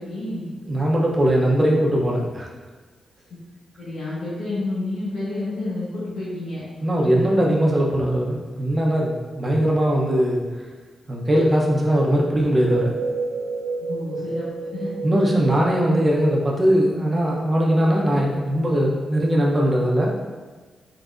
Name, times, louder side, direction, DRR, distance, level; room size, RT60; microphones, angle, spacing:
voice 1, 0.0-0.5 3.8-6.6 13.8-14.9, left 2 dB, 80° left, -10 dB, 1.1 m, -29 dB
voice 2, 0.7-2.5 6.8-10.4 11.1-13.0 15.0-20.1, equal, 35° right, -2 dB, 0.8 m, -20 dB
sound 1, 12.5-17.1, right 4 dB, 80° right, 0.4 m, -31 dB
3.9 x 3.4 x 2.6 m, 1.4 s
cardioid pair, 60°, 0 cm